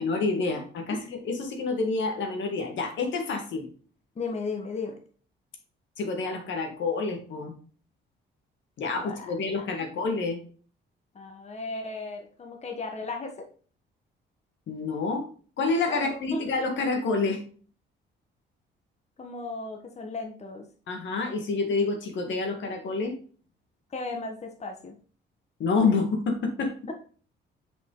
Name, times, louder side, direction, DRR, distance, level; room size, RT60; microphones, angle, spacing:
voice 1, 0.0-3.7 6.0-7.5 8.8-10.4 14.7-15.3 15.6-17.4 20.9-23.1 25.6-26.8, left 4 dB, 70° left, 3 dB, 1.7 m, -28 dB
voice 2, 4.2-4.9 9.0-9.1 11.1-13.5 15.9-16.4 19.2-20.6 23.9-24.9 26.9-27.0, left 3 dB, 35° left, 3 dB, 1.2 m, -35 dB
6.2 x 5.2 x 3.8 m, 0.42 s
cardioid pair, 90°, 20 cm